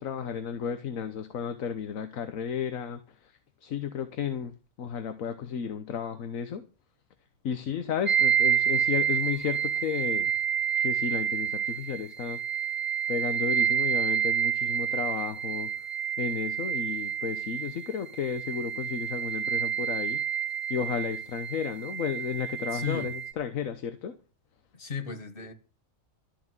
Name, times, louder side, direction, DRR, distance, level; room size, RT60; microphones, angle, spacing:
voice 1, 0.0-4.5 4.8-6.6 7.4-10.3 10.8-12.7 13.1-15.7 16.2-20.2 20.7-24.2, left 7 dB, 80° left, 1.4 m, -33 dB
sound 1, 8.0-23.3, right 9 dB, 35° right, 1.2 m, -29 dB
voice 2, 22.7-23.1 24.7-25.5, left 5 dB, 45° left, 1.8 m, -35 dB
13.5 x 6.1 x 8.9 m
omnidirectional pair, 1.4 m